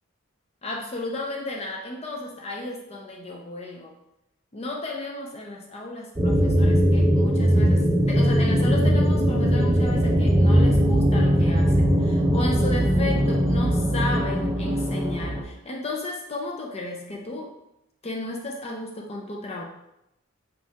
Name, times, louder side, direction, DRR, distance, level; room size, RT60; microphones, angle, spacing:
voice 1, 0.6-3.9 4.5-17.5 18.0-19.6, left 2 dB, 30° left, 0 dB, 0.5 m, -33 dB
sound 1, 6.2-15.4, equal, 15° right, 0.7 m, -20 dB
4.6 x 4.3 x 2.4 m, 0.84 s
head